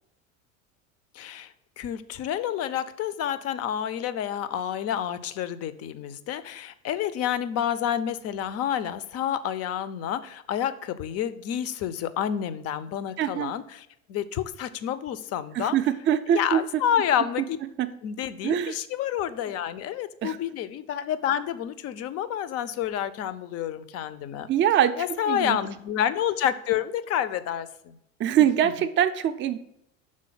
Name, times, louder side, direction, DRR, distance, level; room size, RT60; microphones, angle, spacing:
voice 1, 1.1-15.8 16.3-17.6 18.0-24.5 25.0-28.0, left 10 dB, 35° left, 14 dB, 0.5 m, -29 dB
voice 2, 13.2-13.5 15.5-16.6 17.8-17.9 18.4-18.7 20.2-20.4 24.5-25.6 28.2-29.6, right 10 dB, 30° right, 9 dB, 0.4 m, -23 dB
6.3 x 3.7 x 5.6 m, 0.78 s
hypercardioid pair, 80°, 42 cm